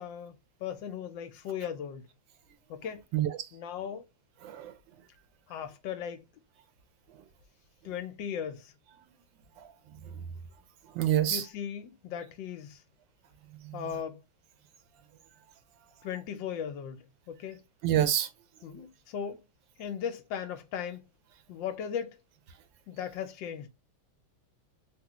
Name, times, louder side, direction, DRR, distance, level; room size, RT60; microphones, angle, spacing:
voice 1, 0.0-2.1 2.7-3.1 3.5-4.0 5.5-6.2 7.8-8.7 11.3-12.8 13.7-14.2 16.0-17.6 18.6-19.4 19.8-21.0 21.5-22.2 22.9-23.7, left 8 dB, 75° left, 1.2 m, -37 dB
voice 2, 11.0-11.4 13.6-13.8 17.8-18.3, right 11 dB, 75° right, 1.2 m, -26 dB
3.7 x 2.2 x 2.9 m
omnidirectional pair, 2.2 m